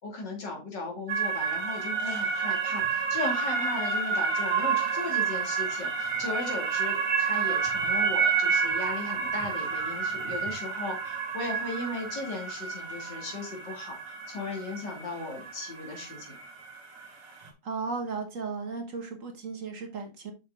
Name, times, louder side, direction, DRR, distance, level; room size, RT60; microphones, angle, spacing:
voice 1, 0.0-16.3, left 2 dB, 80° left, 1 dB, 3.2 m, -37 dB
sound 1, 1.1-17.5, right 6 dB, 75° right, 2.8 m, -30 dB
voice 2, 17.6-20.3, right 4 dB, 50° right, 4 dB, 1.7 m, -35 dB
6.6 x 6.0 x 3.7 m, 0.27 s
omnidirectional pair, 1.9 m